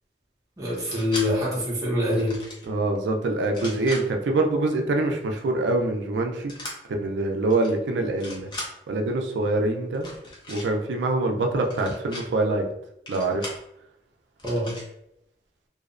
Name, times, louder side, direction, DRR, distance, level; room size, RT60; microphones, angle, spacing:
voice 1, 0.6-2.4 14.4-14.7, left 1 dB, 20° right, -6 dB, 0.6 m, -25 dB
sound 1, 0.7-1.3 2.1-2.7 3.4-4.0 6.5-6.7 7.5-7.7 8.0-8.7 9.9-10.7 11.6-12.2 13.1-13.6 14.4-14.9, left 1 dB, 25° left, 0.5 m, -38 dB
voice 2, 2.6-6.5 6.9-8.5 8.9-10.1 10.5-12.7 13.1-13.5, right 2 dB, 85° right, 3 dB, 0.4 m, -25 dB
2.6 x 2.0 x 2.4 m, 0.80 s
head